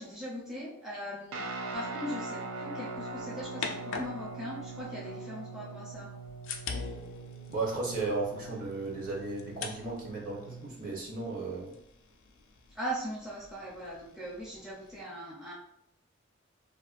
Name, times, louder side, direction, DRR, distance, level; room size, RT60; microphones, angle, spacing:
voice 1, 0.0-1.4 1.7-6.1 12.7-15.5, equal, 5° right, -7 dB, 0.4 m, -40 dB
Guitar, 1.3-10.7, right 3 dB, 80° right, 0.3 m, -42 dB
sound 1, 2.9-5.2 5.9-15.0, left 5 dB, 65° left, 0.3 m, -45 dB
voice 2, 7.5-11.7, right 3 dB, 40° right, -3 dB, 0.7 m, -35 dB
2.4 x 2.1 x 2.4 m, 0.74 s
head